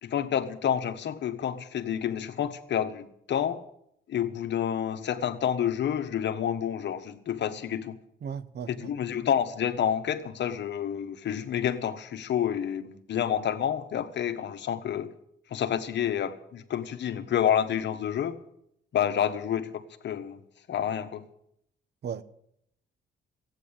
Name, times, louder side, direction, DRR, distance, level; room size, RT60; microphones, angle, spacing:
voice 1, 0.0-3.6 4.1-8.0 8.7-15.1 15.5-18.4 18.9-20.4 20.7-21.3, left 9 dB, 60° left, 1.3 m, -29 dB
voice 2, 8.2-8.9 22.0-22.2, right 7 dB, 55° right, 1.0 m, -36 dB
14.5 x 9.2 x 8.7 m
cardioid pair, 90°, 20 cm